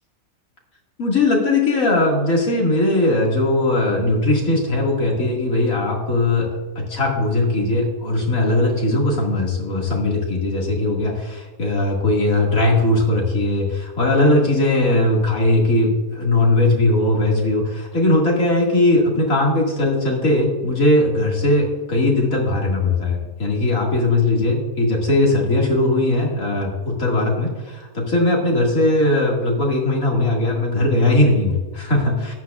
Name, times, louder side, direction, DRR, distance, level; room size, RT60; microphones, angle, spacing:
voice 1, 1.0-32.3, left 2 dB, 70° left, -2 dB, 2.5 m, -19 dB
13.5 x 10.5 x 2.4 m, 1.3 s
omnidirectional pair, 1.5 m